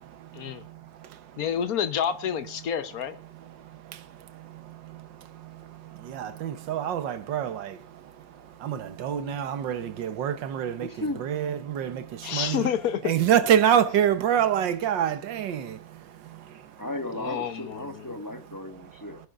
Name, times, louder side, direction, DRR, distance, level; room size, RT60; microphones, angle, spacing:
voice 1, 0.0-1.4 3.3-10.9 11.2-12.7 13.0-16.8, right 9 dB, 85° right, 1.7 m, -28 dB
voice 2, 1.4-3.2 12.2-13.1 17.2-18.0, left 8 dB, 60° left, 1.2 m, -29 dB
voice 3, 10.8-11.2 16.8-19.2, left 1 dB, 10° left, 1.3 m, -35 dB
23.5 x 10.0 x 2.5 m
omnidirectional pair, 1.9 m